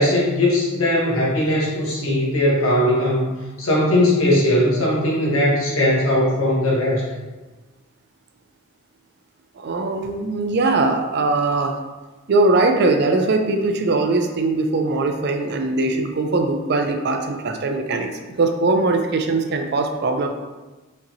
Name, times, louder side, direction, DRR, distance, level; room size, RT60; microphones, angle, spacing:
voice 1, 0.0-3.3 3.6-7.0, left 1 dB, 80° left, -5 dB, 1.3 m, -19 dB
voice 2, 9.6-11.8 12.3-20.3, right 3 dB, 50° right, 5 dB, 0.4 m, -21 dB
5.1 x 2.8 x 2.7 m, 1.2 s
head